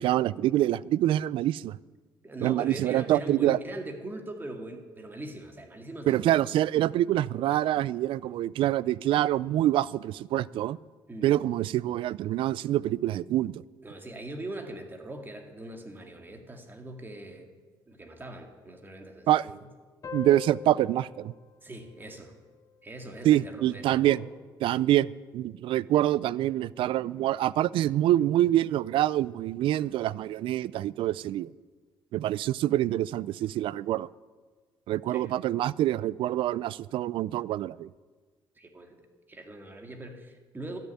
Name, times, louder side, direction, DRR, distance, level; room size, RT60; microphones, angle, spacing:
voice 1, 0.0-1.8 2.4-3.6 6.1-10.8 11.2-13.5 19.3-19.5 20.1-21.3 23.2-24.2 24.6-25.1 25.3-31.5 32.1-34.1 34.9-37.9, right 13 dB, 70° right, 0.4 m, -26 dB
voice 2, 2.2-6.3 11.1-11.4 13.8-17.5 17.9-19.6 21.6-22.3 22.8-24.2 35.1-35.3 38.6-39.0 39.3-40.8, right 1 dB, 20° right, 2.1 m, -41 dB
sound 1, 20.0-23.2, left 6 dB, 35° left, 0.6 m, -44 dB
13.0 x 6.8 x 9.5 m
cardioid pair, 85°, 9 cm